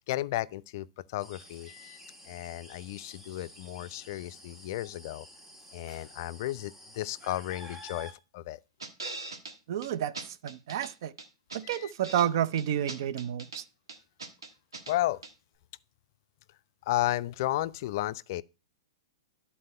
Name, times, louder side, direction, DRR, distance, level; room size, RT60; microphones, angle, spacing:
voice 1, 0.1-2.0 2.3-5.3 5.7-8.6 11.6-11.9 14.9-15.2 16.9-18.4, left 15 dB, 50° left, 0.3 m, -33 dB
sound 1, 1.2-8.1, equal, 10° right, 1.4 m, -51 dB
sound 2, 8.8-9.5 9.8-9.9 10.1-10.9 11.2-12.3 12.6-13.6 13.9-15.0 15.2-15.3, right 3 dB, 80° right, 1.3 m, -41 dB
voice 2, 9.7-11.1 11.5-13.6, right 10 dB, 55° right, 0.5 m, -30 dB
11.0 x 4.2 x 5.3 m
figure-of-eight pair, 110°, 2 cm